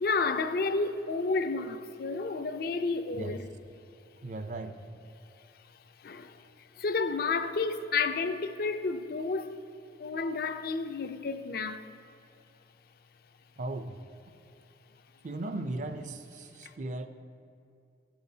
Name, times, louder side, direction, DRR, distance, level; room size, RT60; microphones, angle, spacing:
voice 1, 0.0-3.5 6.0-6.3 6.8-9.6 10.0-11.9, left 4 dB, 55° left, 0.4 m, -31 dB
voice 2, 4.2-4.8 13.6-14.0 15.2-17.1, right 2 dB, 45° right, 0.5 m, -37 dB
14.0 x 12.0 x 2.7 m
head